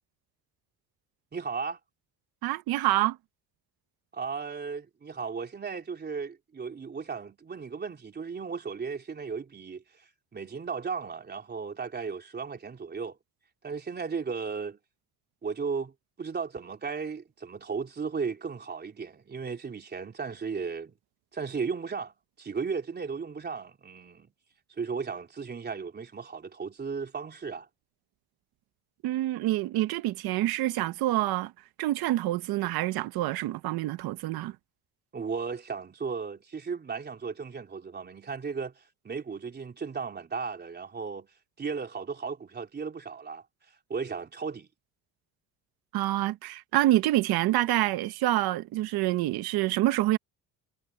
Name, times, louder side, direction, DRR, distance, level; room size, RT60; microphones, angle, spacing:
voice 1, 1.3-1.8 4.1-13.2 13.6-14.8 15.4-21.0 21.3-22.1 22.4-24.3 24.8-27.7 35.1-41.3 41.6-43.4 43.9-44.7, right 5 dB, 25° right, 3.4 m, -35 dB
voice 2, 2.4-3.2 29.0-31.5 31.8-34.6 45.9-50.2, right 15 dB, 85° right, 1.2 m, -27 dB
cardioid pair, 140°, 36 cm